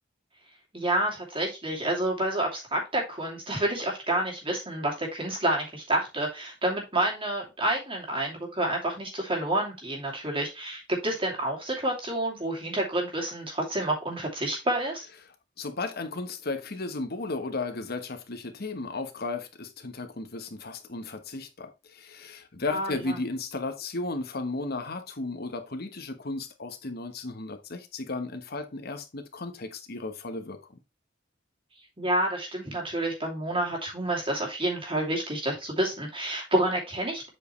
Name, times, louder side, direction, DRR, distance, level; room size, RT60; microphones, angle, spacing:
voice 1, 0.7-15.0 22.7-23.2 32.0-37.3, right 1 dB, 30° right, 2.7 m, -29 dB
voice 2, 15.6-30.6, left 3 dB, 55° left, 1.1 m, -34 dB
7.8 x 5.1 x 3.2 m
head